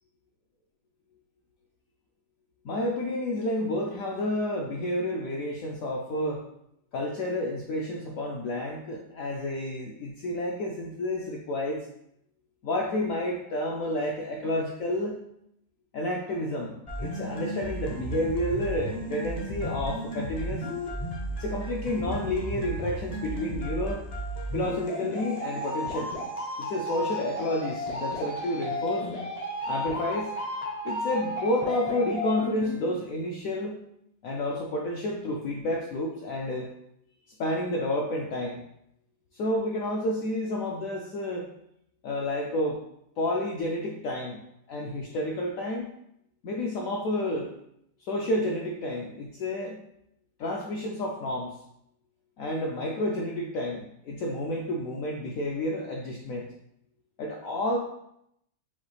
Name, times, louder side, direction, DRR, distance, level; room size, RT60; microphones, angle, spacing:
voice 1, 2.6-6.4 6.9-11.9 12.6-15.2 15.9-20.7 21.4-24.0 24.5-26.1 26.6-29.1 29.7-30.3 30.8-33.8 34.2-36.7 37.4-38.6 39.3-41.5 42.0-42.8 43.2-44.4 44.7-45.9 46.4-47.5 48.1-49.8 50.4-51.5 52.4-56.5 57.2-57.8, left 1 dB, 75° left, -1 dB, 0.8 m, -30 dB
sound 1, 16.9-32.9, equal, 45° left, 0.4 m, -34 dB
5.7 x 2.3 x 3.1 m, 0.77 s
omnidirectional pair, 1.9 m